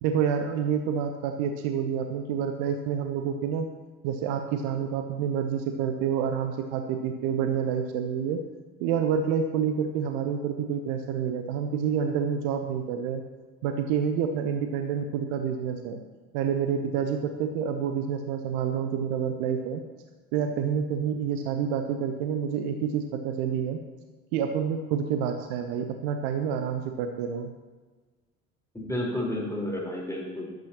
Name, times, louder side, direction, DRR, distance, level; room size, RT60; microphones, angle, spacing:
voice 1, 0.0-3.7 4.0-8.4 8.8-13.2 13.6-16.0 16.3-19.8 20.3-23.8 24.3-27.5, right 7 dB, 55° right, 6 dB, 1.0 m, -28 dB
voice 2, 28.7-30.5, left 1 dB, 5° left, -3 dB, 4.4 m, -31 dB
14.5 x 12.0 x 3.0 m, 1.3 s
figure-of-eight pair, 55°, 41 cm